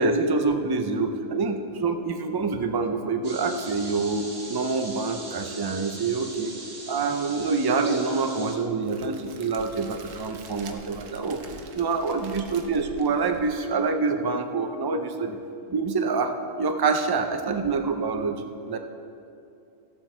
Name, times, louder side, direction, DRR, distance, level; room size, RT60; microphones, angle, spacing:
voice 1, 0.0-6.5 6.9-11.4 11.7-15.4 15.7-18.4 18.7-18.8, right 4 dB, 35° right, 6 dB, 0.3 m, -26 dB
sound 1, 3.2-8.6, right 2 dB, 55° right, 1.7 m, -40 dB
Crackle, 8.8-13.9, right 5 dB, 80° right, 1.2 m, -45 dB
14.5 x 7.5 x 4.4 m, 2.6 s
omnidirectional pair, 1.3 m